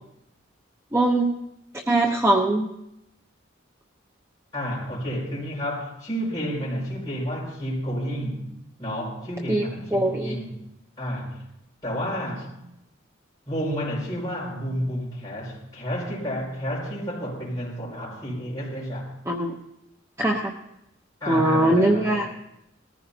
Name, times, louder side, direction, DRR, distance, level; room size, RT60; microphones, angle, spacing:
voice 1, 0.9-1.3 1.9-2.7 9.5-9.6 9.9-10.4 19.3-19.5 20.2-20.5 21.3-22.3, right 1 dB, 15° right, 1 dB, 0.8 m, -21 dB
voice 2, 4.5-8.5 8.8-10.6 11.0-11.4 11.8-12.5 13.5-19.1 21.2-22.2, equal, 20° left, -5 dB, 5.5 m, -30 dB
19.5 x 14.5 x 2.8 m, 0.85 s
head